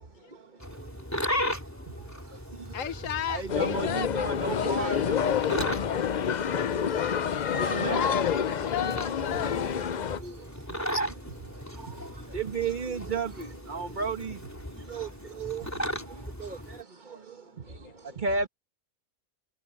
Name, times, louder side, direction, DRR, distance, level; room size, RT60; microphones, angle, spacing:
sound 1, 0.6-16.8, equal, 10° left, 3.3 m, -37 dB
voice 1, 1.5-2.4 4.6-5.2 7.4-8.1 11.5-11.6 11.9-12.4, right 1 dB, 10° right, 1.7 m, -43 dB
voice 2, 2.7-4.3 7.9-9.8 17.7-18.2, left 9 dB, 75° left, 1.4 m, -33 dB
voice 3, 3.3-5.0 7.5-8.0 10.2-10.3 12.3-14.4 14.9-15.1 15.4-15.6 16.4-16.6 18.2-18.5, right 4 dB, 35° right, 1.3 m, -32 dB
sound 2, 3.5-10.2, left 8 dB, 50° left, 0.5 m, -28 dB
omnidirectional pair, 1.4 m